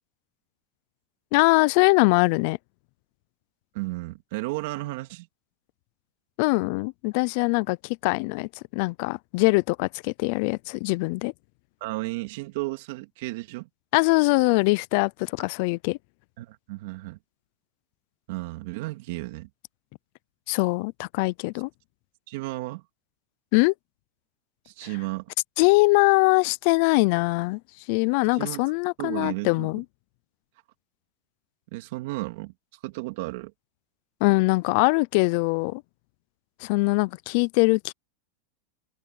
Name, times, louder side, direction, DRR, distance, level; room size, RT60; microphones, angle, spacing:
voice 1, 1.3-2.6 6.4-11.3 13.9-16.0 20.5-21.7 23.5-23.7 25.6-27.6 27.9-29.8 34.2-35.8 36.6-37.9, left 26 dB, 55° left, 0.4 m, -22 dB
voice 2, 3.7-5.3 11.8-13.7 16.4-17.2 18.3-19.5 22.3-22.8 24.6-25.3 28.3-28.6 29.0-29.7 31.7-32.5 32.8-33.5, right 21 dB, 65° right, 3.1 m, -33 dB
supercardioid pair, 150°, 0 cm